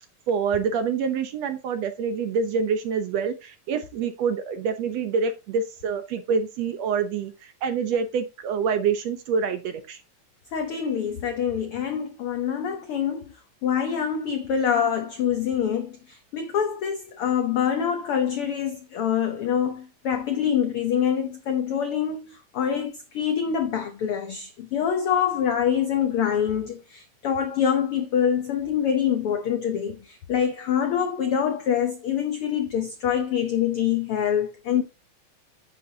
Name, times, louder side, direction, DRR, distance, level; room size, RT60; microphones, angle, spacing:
voice 1, 0.3-10.0, right 6 dB, 70° right, 1.8 m, -26 dB
voice 2, 10.5-13.3 13.6-34.8, left 8 dB, 85° left, 1.2 m, -25 dB
9.6 x 7.9 x 2.8 m
omnidirectional pair, 3.7 m